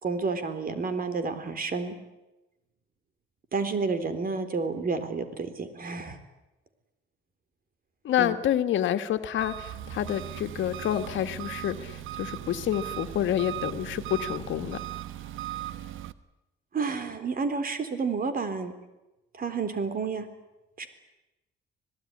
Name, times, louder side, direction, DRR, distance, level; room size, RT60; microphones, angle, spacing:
voice 1, 0.0-2.0 3.5-6.2 8.2-8.4 16.7-18.7 19.4-20.3 20.8-20.9, right 4 dB, 45° right, 10 dB, 3.9 m, -30 dB
voice 2, 8.0-14.8, left 11 dB, 75° left, 8 dB, 1.8 m, -28 dB
Engine, 9.4-16.1, right 12 dB, 85° right, 1.1 m, -38 dB
26.5 x 18.5 x 10.0 m, 1.0 s
cardioid pair, 90°, 20 cm